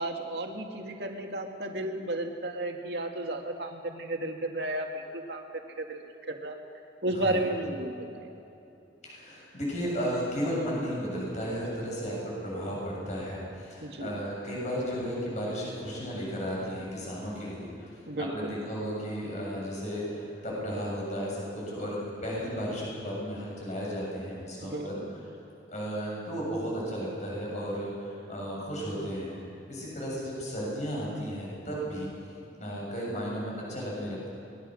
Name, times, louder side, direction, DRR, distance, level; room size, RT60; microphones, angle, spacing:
voice 1, 0.0-5.4 5.8-6.0 6.3-6.6 7.0-8.3 13.8-14.1 18.1-18.6 24.6-25.1, right 1 dB, 70° right, 2 dB, 2.1 m, -33 dB
voice 2, 7.1-7.5 9.0-17.9 18.2-25.0 25.7-29.3 29.7-32.1 32.6-34.3, equal, 40° left, -4 dB, 7.5 m, -34 dB
24.0 x 20.5 x 6.4 m, 2.9 s
head